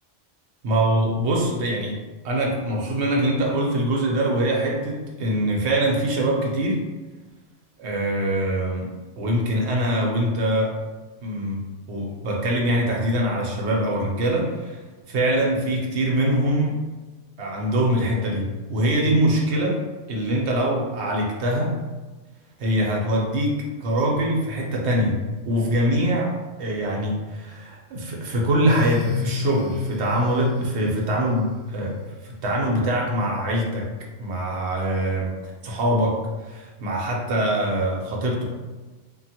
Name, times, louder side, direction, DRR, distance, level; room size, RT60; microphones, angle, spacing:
voice 1, 0.6-2.0 2.2-6.8 7.8-8.9 9.2-10.7 11.2-11.6 11.9-14.8 15.1-16.8 17.4-19.8 20.1-21.7 22.6-25.2 25.5-26.3 26.6-32.0 32.2-33.9 34.2-35.3 35.6-38.4, right 1 dB, 65° right, -2 dB, 1.0 m, -23 dB
sound 1, 28.7-33.2, left 5 dB, 65° left, 1.0 m, -32 dB
3.0 x 2.4 x 2.8 m, 1.2 s
omnidirectional pair, 1.3 m